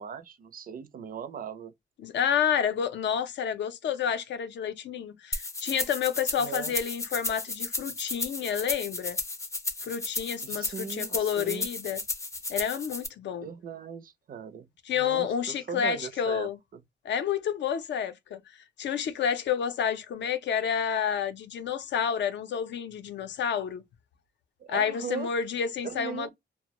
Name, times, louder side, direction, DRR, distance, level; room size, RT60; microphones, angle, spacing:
voice 1, 0.0-1.7 6.4-6.7 10.4-11.7 13.4-16.8 24.6-25.3 25.8-26.3, right 7 dB, 50° right, 0.4 m, -39 dB
voice 2, 2.0-9.2 9.8-12.0 12.5-13.5 14.9-16.6 17.0-23.8 24.7-26.3, left 8 dB, 75° left, 0.5 m, -29 dB
sound 1, 5.3-13.1, left 2 dB, 15° left, 0.4 m, -34 dB
2.2 x 2.0 x 2.8 m
wide cardioid pair, 130°, 18 cm